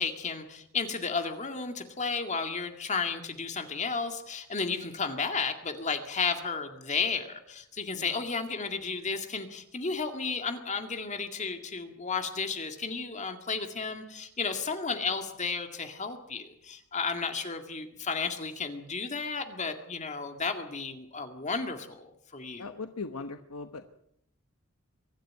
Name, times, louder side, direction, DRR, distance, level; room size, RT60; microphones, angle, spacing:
voice 1, 0.0-22.7, left 5 dB, 35° left, 6 dB, 2.1 m, -33 dB
voice 2, 22.6-23.8, left 4 dB, 85° left, 8 dB, 1.2 m, -39 dB
23.5 x 12.5 x 9.4 m, 0.77 s
head